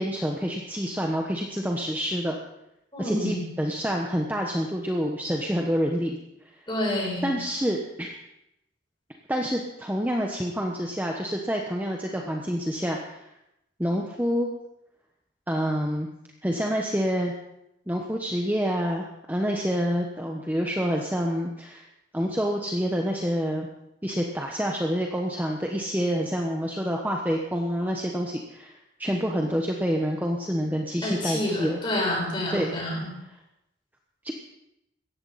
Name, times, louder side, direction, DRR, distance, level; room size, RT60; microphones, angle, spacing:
voice 1, 0.0-2.4 3.0-6.2 7.2-8.1 9.3-13.2 13.8-14.5 15.5-16.1 16.4-17.3 17.9-21.8 22.1-23.7 24.0-28.7 29.0-31.8 32.5-32.7 34.2-34.3, equal, 10° right, 0 dB, 1.1 m, -27 dB
voice 2, 2.9-3.4 6.7-7.3 31.0-33.1, left 1 dB, 25° left, -4 dB, 7.4 m, -28 dB
17.5 x 14.0 x 4.2 m, 0.83 s
head